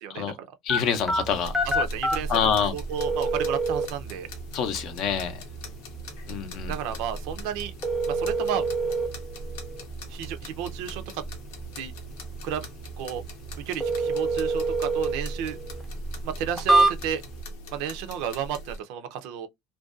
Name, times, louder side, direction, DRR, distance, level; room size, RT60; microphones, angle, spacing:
voice 1, 0.0-0.5 1.6-2.4 2.7-4.3 6.6-7.7 8.1-8.7 10.1-11.2 11.7-11.9 12.4-12.7 13.0-13.2 13.7-15.6 16.2-17.2 17.7-19.5, right 9 dB, 70° right, 0.4 m, -32 dB
voice 2, 0.6-1.5 2.3-2.7 4.5-5.4 6.3-6.7, left 7 dB, 50° left, 0.5 m, -26 dB
sound 1, 0.7-17.4, right 2 dB, ahead, 0.5 m, -29 dB
sound 2, 1.3-18.8, equal, 90° left, 0.7 m, -40 dB
2.5 x 2.2 x 2.3 m
cardioid pair, 140°, 0 cm